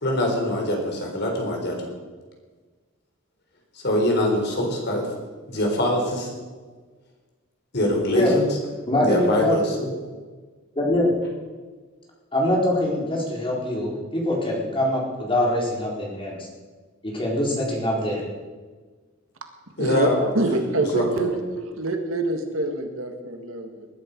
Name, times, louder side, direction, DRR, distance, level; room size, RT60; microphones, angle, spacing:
voice 1, 0.0-1.9 3.8-5.1 5.5-6.3 7.7-8.5 9.0-9.8 19.8-20.3 20.8-21.3, left 1 dB, 55° left, 1 dB, 4.1 m, -23 dB
voice 2, 8.9-9.9 10.8-11.1 12.3-16.5 17.0-18.2, left 1 dB, 25° left, -2 dB, 4.0 m, -23 dB
voice 3, 20.3-23.9, right 2 dB, 85° right, 5 dB, 1.8 m, -26 dB
20.0 x 11.5 x 5.3 m, 1.4 s
head